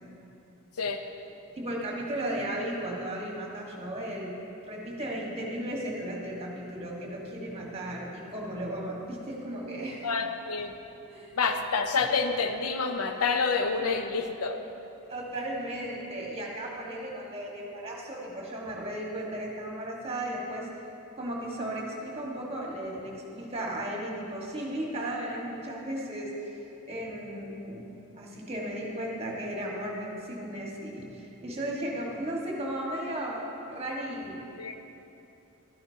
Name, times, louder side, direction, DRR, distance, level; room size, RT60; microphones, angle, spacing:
voice 1, 1.6-4.3 4.7-10.1 11.1-11.3 13.8-13.9 15.1-20.7 21.1-26.6 26.9-27.8 28.2-34.4, right 1 dB, 25° right, -2 dB, 1.5 m, -35 dB
voice 2, 10.0-10.7 11.3-14.6 34.6-34.8, left 4 dB, 85° left, 6 dB, 0.7 m, -28 dB
12.5 x 11.0 x 2.8 m, 2.8 s
head